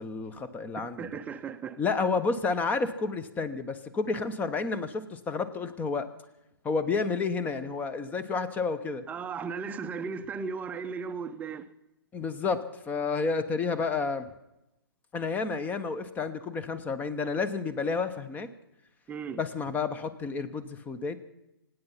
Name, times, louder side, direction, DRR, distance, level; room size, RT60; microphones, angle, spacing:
voice 1, 0.0-1.1 1.8-6.1 6.6-9.0 12.1-14.3 15.1-18.5 19.4-21.2, left 4 dB, 10° left, 1.0 m, -30 dB
voice 2, 0.8-1.8 9.1-11.7 19.1-19.4, right 5 dB, 10° right, 0.8 m, -36 dB
25.0 x 9.6 x 5.7 m
hypercardioid pair, 135°, 13 cm